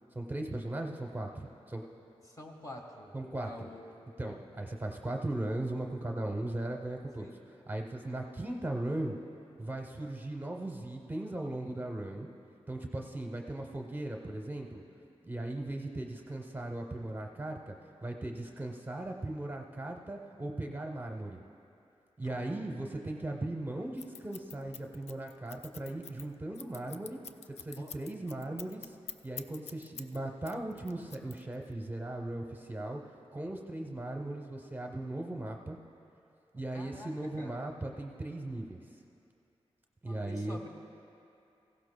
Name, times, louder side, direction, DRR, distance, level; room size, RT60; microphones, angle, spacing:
voice 1, 0.1-1.8 3.1-3.7 4.2-9.2 9.6-12.3 12.7-14.8 15.2-17.8 18.0-21.4 22.2-27.2 27.6-29.0 29.2-33.0 33.3-35.8 36.5-38.8 40.0-40.6, right 1 dB, 20° right, 2 dB, 0.7 m, -38 dB
voice 2, 2.2-3.9 4.2-4.4 7.2-7.5 11.6-12.2 22.2-22.6 27.8-27.9 36.7-37.7 40.1-40.7, left 1 dB, 35° left, 1 dB, 1.4 m, -48 dB
Scissors, 24.0-30.2 30.5-31.7, left 7 dB, 85° left, 0.4 m, -46 dB
17.5 x 16.0 x 2.2 m, 2.7 s
wide cardioid pair, 120°, 11 cm